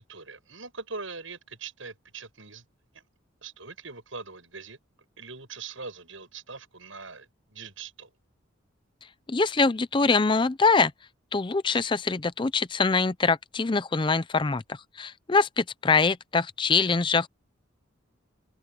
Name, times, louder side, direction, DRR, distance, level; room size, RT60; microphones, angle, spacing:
voice 1, 0.0-2.6 3.4-4.8 5.2-8.1 11.7-11.8, right 4 dB, 75° right, 7.7 m, -42 dB
voice 2, 9.3-10.9 11.3-17.3, left 4 dB, 25° left, 0.5 m, -24 dB
open air
head